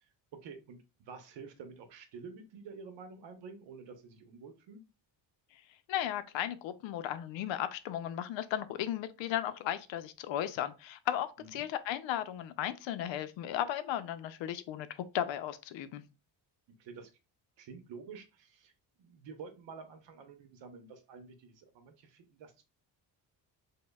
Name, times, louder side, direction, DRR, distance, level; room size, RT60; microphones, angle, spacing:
voice 1, 0.0-4.8 11.4-11.7 16.8-17.1 17.6-18.7 19.0-22.6, right 5 dB, 75° right, 0.8 m, -49 dB
voice 2, 5.9-14.9 15.1-16.0, left 11 dB, 85° left, 0.5 m, -35 dB
5.1 x 2.2 x 2.2 m
cardioid pair, 175°, 44 cm